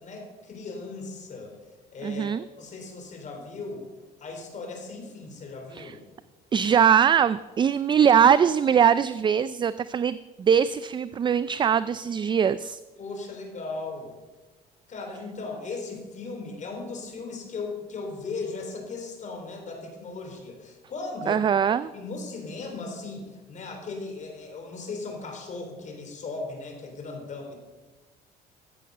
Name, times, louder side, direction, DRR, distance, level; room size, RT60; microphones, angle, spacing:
voice 1, 0.0-1.6 1.9-3.9 4.2-6.0 13.0-14.1 14.9-21.4 21.9-27.6, left 3 dB, 45° left, 3 dB, 3.7 m, -37 dB
voice 2, 2.0-2.4 5.8-5.9 6.5-12.8 21.3-21.9, right 8 dB, 30° right, 15 dB, 0.4 m, -21 dB
14.0 x 8.1 x 6.7 m, 1.2 s
cardioid pair, 110°, 17 cm